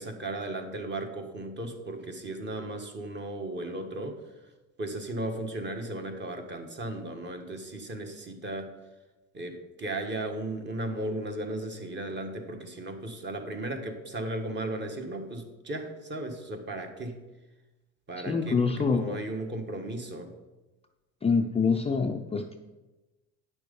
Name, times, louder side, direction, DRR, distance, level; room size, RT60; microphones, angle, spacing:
voice 1, 0.0-4.2 4.8-8.7 9.3-17.2 18.1-20.3, right 2 dB, 30° right, 5 dB, 1.5 m, -36 dB
voice 2, 18.2-19.2 21.2-22.6, left 5 dB, 15° left, 4 dB, 0.5 m, -26 dB
9.4 x 6.1 x 5.3 m, 1.1 s
cardioid pair, 115°, 37 cm